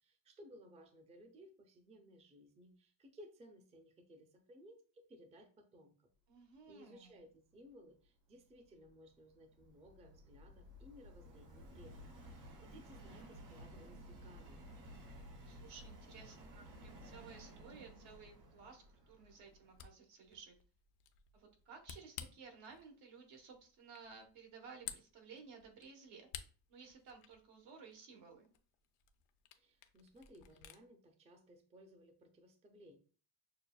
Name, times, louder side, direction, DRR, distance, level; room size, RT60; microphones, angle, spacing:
voice 1, 0.0-6.1 6.4-12.0 12.3-14.6 29.6-33.0, equal, 15° right, 5 dB, 0.3 m, -60 dB
voice 2, 6.3-7.1 15.4-20.6 21.3-26.3 26.7-28.5, right 5 dB, 80° right, 2 dB, 1.2 m, -56 dB
Subway metro underground, 8.6-19.9, equal, 60° right, 1.6 m, -55 dB
Camera, 19.5-30.8, left 10 dB, 85° left, 0.6 m, -55 dB
6.5 x 2.2 x 2.2 m, 0.40 s
cardioid pair, 140°, 49 cm